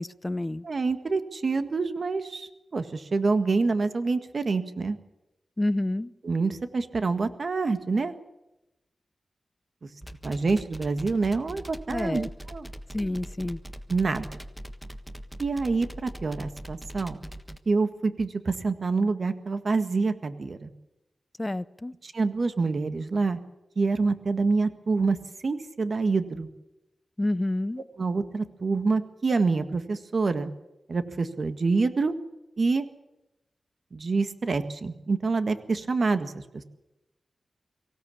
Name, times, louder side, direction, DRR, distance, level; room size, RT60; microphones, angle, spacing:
voice 1, 0.0-0.6 5.6-6.1 11.9-12.3 12.9-13.6 21.4-21.9 27.2-27.8, left 1 dB, 20° left, 0.7 m, -28 dB
voice 2, 0.6-5.0 6.2-8.1 10.2-12.7 13.9-14.4 15.4-17.2 17.6-20.7 22.0-23.4 23.7-25.2 25.4-26.5 28.0-30.5 30.9-32.1 32.6-32.8 33.9-36.6, right 4 dB, 55° right, 1.7 m, -26 dB
sound 1, 10.0-17.6, equal, ahead, 1.4 m, -41 dB
24.5 x 17.0 x 8.5 m
wide cardioid pair, 95°, 0 cm